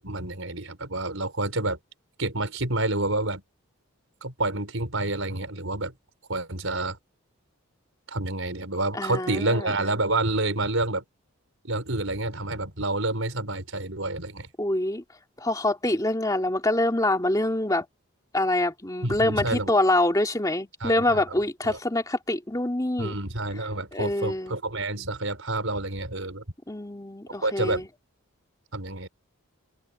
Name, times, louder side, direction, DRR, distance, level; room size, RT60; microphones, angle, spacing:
voice 1, 0.0-1.8 2.2-3.4 4.2-5.9 6.3-7.0 8.1-11.0 11.6-14.5 19.0-19.7 20.8-21.2 21.7-21.8 23.0-26.4 27.4-27.8 28.7-29.1, right 2 dB, 65° right, 4.8 m, -28 dB
voice 2, 8.9-9.7 14.6-15.0 15.4-17.8 18.3-23.1 23.9-24.6 26.7-27.9, left 1 dB, 15° left, 2.4 m, -25 dB
open air
head